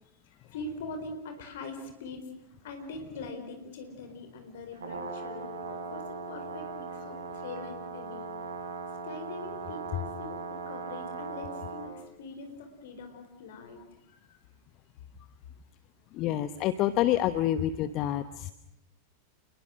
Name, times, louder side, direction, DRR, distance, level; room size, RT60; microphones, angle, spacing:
voice 1, 0.5-2.4 2.6-8.3 9.0-13.8 14.1-14.4, left 3 dB, 55° left, 6 dB, 4.6 m, -43 dB
Brass instrument, 4.7-11.9, right 4 dB, 65° right, 4.9 m, -39 dB
voice 2, 16.1-18.5, left 12 dB, 40° left, 13 dB, 1.0 m, -27 dB
29.0 x 22.0 x 6.5 m, 0.83 s
figure-of-eight pair, 90°, 0 cm